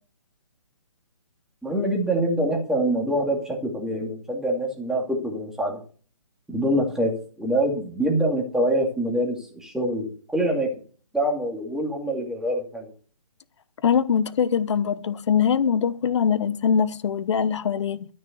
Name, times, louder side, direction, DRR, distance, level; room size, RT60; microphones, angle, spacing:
voice 1, 1.6-5.8 6.5-10.7 11.1-12.9, right 1 dB, 5° right, 2.3 m, -25 dB
voice 2, 13.8-18.1, left 7 dB, 50° left, 0.9 m, -22 dB
12.5 x 6.4 x 6.8 m
hypercardioid pair, 150°, 18 cm